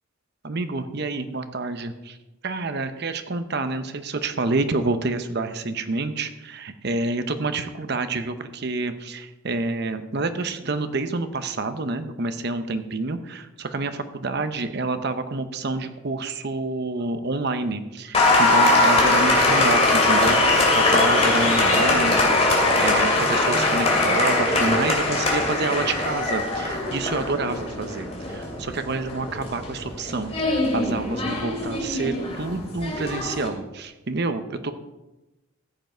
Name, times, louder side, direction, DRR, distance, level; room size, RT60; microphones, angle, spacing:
voice 1, 0.4-2.2 2.4-34.7, right 3 dB, 50° right, 9 dB, 0.8 m, -28 dB
Applause, 18.1-33.5, left 2 dB, 30° left, 2.5 m, -21 dB
14.0 x 8.0 x 4.5 m, 1.0 s
head